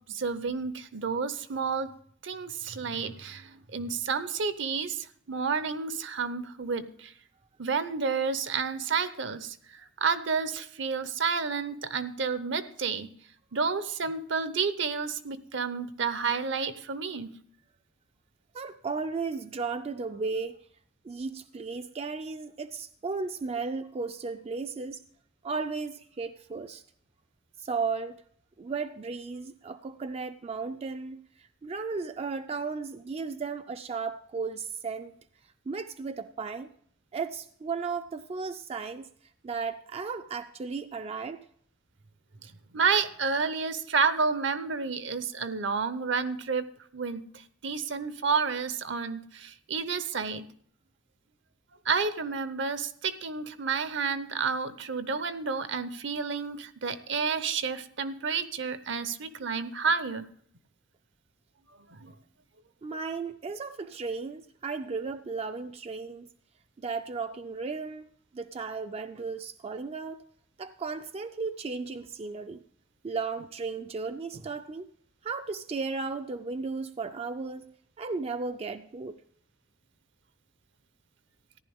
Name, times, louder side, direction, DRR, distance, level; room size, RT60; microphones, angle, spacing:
voice 1, 0.1-1.9 2.2-7.1 7.6-13.1 13.5-17.3 42.4-46.7 46.9-47.2 47.6-50.4 51.8-60.3 61.9-62.1, right 5 dB, 65° right, 0.8 m, -30 dB
voice 2, 18.5-20.6 21.0-25.0 25.4-26.8 27.6-28.2 28.6-35.1 35.7-36.7 37.1-39.1 39.4-41.4 62.8-66.3 66.8-70.2 70.6-72.6 73.0-74.9 75.2-79.2, right 4 dB, 30° right, 0.4 m, -35 dB
14.5 x 10.5 x 3.5 m
head